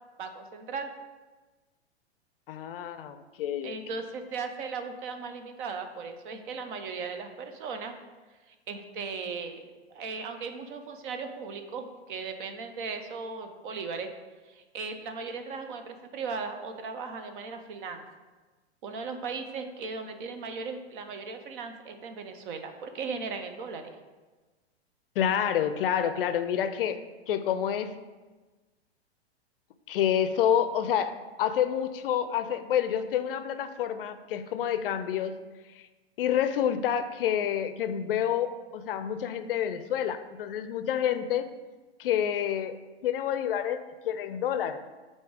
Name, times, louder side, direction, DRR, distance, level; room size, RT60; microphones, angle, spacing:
voice 1, 0.2-0.9 3.6-7.9 8.7-14.1 14.5-18.0 18.8-24.0, right 5 dB, 50° right, 7 dB, 0.8 m, -37 dB
voice 2, 2.5-3.8 25.2-27.0 27.3-27.9 29.9-35.4 36.2-41.5 42.0-42.8 43.0-43.8 44.0-44.8, left 9 dB, 55° left, 11 dB, 0.5 m, -28 dB
8.1 x 2.8 x 4.7 m, 1.3 s
hypercardioid pair, 110°, 33 cm